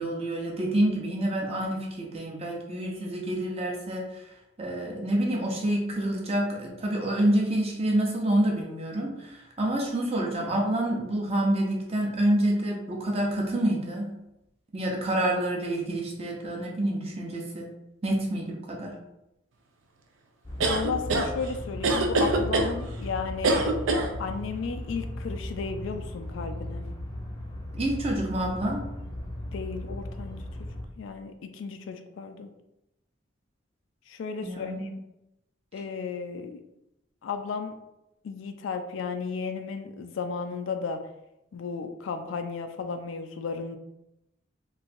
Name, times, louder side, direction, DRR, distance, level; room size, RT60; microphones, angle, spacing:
voice 1, 0.0-4.2 4.6-14.1 14.7-17.7 18.0-19.0 27.7-28.8 34.4-34.9, right 1 dB, 30° right, -1 dB, 0.6 m, -27 dB
sound 1, 20.4-30.8, left 1 dB, 20° left, 0.4 m, -36 dB
sound 2, 20.6-21.3 21.8-22.7 23.4-24.1, right 2 dB, 90° right, 0.4 m, -23 dB
voice 2, 20.7-23.7 24.2-26.8 29.5-30.7 31.0-32.5 34.1-34.9 35.7-36.6 37.2-37.7 38.2-41.0 41.5-43.8, left 5 dB, 80° left, 7 dB, 0.3 m, -34 dB
3.1 x 2.6 x 2.5 m, 0.88 s
head